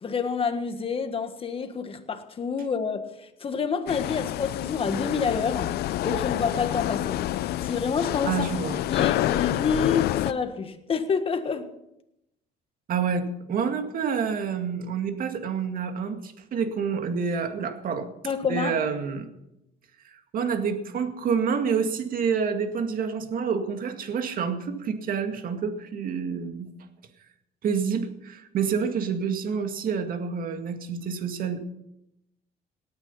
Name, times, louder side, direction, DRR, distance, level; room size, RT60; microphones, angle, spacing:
voice 1, 0.0-5.7 6.0-7.2 7.6-8.5 8.9-11.7 18.2-18.8, left 5 dB, 35° left, 1.5 m, -28 dB
sound 1, 3.9-10.3, left 14 dB, 70° left, 0.5 m, -28 dB
voice 2, 8.3-8.8 12.9-18.1 18.5-19.3 20.0-26.7 27.6-31.7, right 6 dB, 55° right, 2.1 m, -28 dB
18.0 x 9.6 x 5.7 m
cardioid pair, 110°, 17 cm